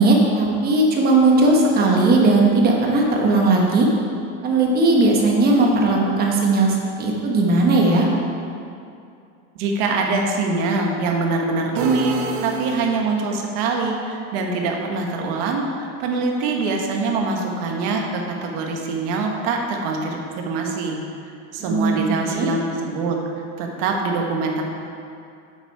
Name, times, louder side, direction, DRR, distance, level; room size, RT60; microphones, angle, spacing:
voice 1, 0.0-3.9 4.4-8.1 21.6-22.5, right 2 dB, 25° right, -1 dB, 1.2 m, -17 dB
voice 2, 9.6-12.1 12.4-21.0 21.5-23.2 23.6-24.6, right 3 dB, 55° right, 1 dB, 1.4 m, -24 dB
sound 1, 11.7-13.3, right 2 dB, 80° right, 1.1 m, -29 dB
8.3 x 8.0 x 4.6 m, 2.5 s
supercardioid pair, 165°, 37 cm